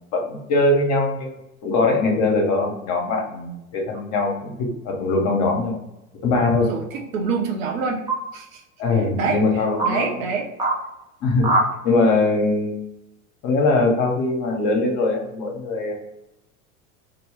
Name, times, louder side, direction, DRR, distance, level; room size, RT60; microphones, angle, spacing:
voice 1, 0.1-1.3 1.6-5.8 6.2-6.7 8.8-10.1 11.2-11.5 11.8-12.8 13.4-15.9, left 3 dB, 40° left, 1 dB, 0.7 m, -21 dB
sound 1, 3.9-4.0 5.5-6.0 8.1-8.2 9.0-9.1 9.8-9.9 10.6-10.8 11.4-11.7, right 2 dB, 10° right, 0.4 m, -22 dB
voice 2, 6.6-8.0 8.3-8.6 8.9-10.5, right 4 dB, 65° right, 1 dB, 0.7 m, -26 dB
2.1 x 2.0 x 3.1 m, 0.90 s
hypercardioid pair, 85°, 43 cm